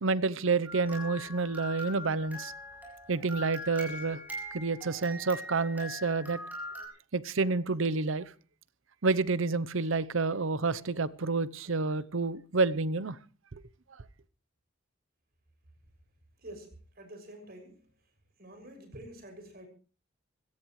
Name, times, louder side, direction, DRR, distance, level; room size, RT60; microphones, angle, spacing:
voice 1, 0.0-2.5 3.1-4.2 4.5-6.4 7.1-8.3 9.0-13.2, right 3 dB, 65° right, 0.8 m, -29 dB
sound 1, 0.6-6.8, left 1 dB, 10° right, 7.5 m, -42 dB
voice 2, 17.0-17.8 18.4-19.7, right 1 dB, 45° right, 6.8 m, -47 dB
25.0 x 17.0 x 3.2 m
head